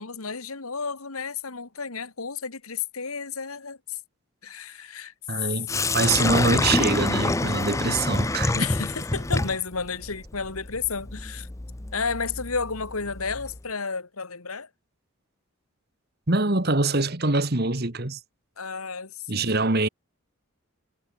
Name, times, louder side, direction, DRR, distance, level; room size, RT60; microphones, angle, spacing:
voice 1, 0.0-4.0 4.4-5.1 5.4-5.5 7.5-7.6 8.5-11.5 11.9-14.7 18.6-19.5, left 5 dB, 85° left, 2.1 m, -32 dB
voice 2, 5.3-5.7 5.9-8.6 16.3-18.2 19.3-19.9, right 3 dB, 45° right, 1.8 m, -24 dB
Sink (filling or washing), 5.7-13.6, left 2 dB, 15° left, 0.5 m, -27 dB
head